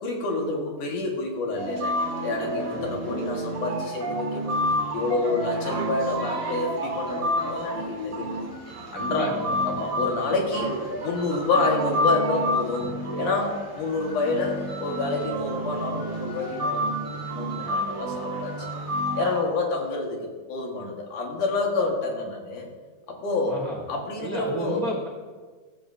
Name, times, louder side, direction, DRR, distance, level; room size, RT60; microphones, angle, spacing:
voice 1, 0.0-1.9 2.2-4.6 4.9-8.4 8.9-9.4 9.7-10.7 11.0-18.5 19.2-22.7 23.1-23.6 23.9-24.8, left 3 dB, 60° left, 0 dB, 2.9 m, -28 dB
sound 1, 1.6-19.4, equal, 20° right, 3.4 m, -29 dB
voice 2, 9.1-9.5 23.5-23.8 24.2-25.1, right 2 dB, 70° right, -2 dB, 0.8 m, -33 dB
15.5 x 14.5 x 2.7 m, 1.5 s
omnidirectional pair, 4.5 m